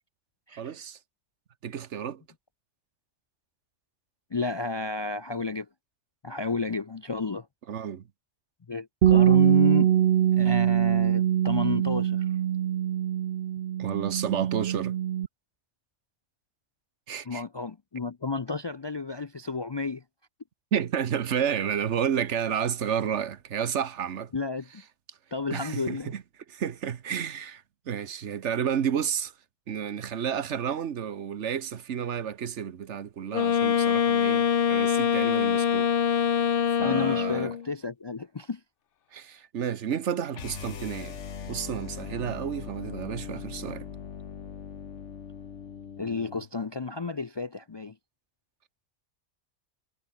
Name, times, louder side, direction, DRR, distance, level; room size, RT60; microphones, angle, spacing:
voice 1, 0.6-1.0 1.6-2.2 7.7-8.0 13.8-14.9 17.1-17.4 20.7-24.3 25.5-26.2 26.5-29.3 29.7-35.9 36.8-37.5 39.1-43.9, right 8 dB, 80° right, 1.3 m, -31 dB
voice 2, 4.3-5.7 6.2-7.5 8.7-9.9 10.3-12.3 17.2-20.0 24.3-24.7 25.3-26.1 36.8-38.6 46.0-47.9, left 4 dB, 40° left, 0.4 m, -31 dB
Bass guitar, 9.0-15.3, right 11 dB, 60° right, 0.7 m, -23 dB
Wind instrument woodwind instrument, 33.3-37.7, left 8 dB, 55° left, 0.9 m, -24 dB
sound 1, 40.3-46.5, left 7 dB, 85° left, 1.5 m, -40 dB
omnidirectional pair, 1.2 m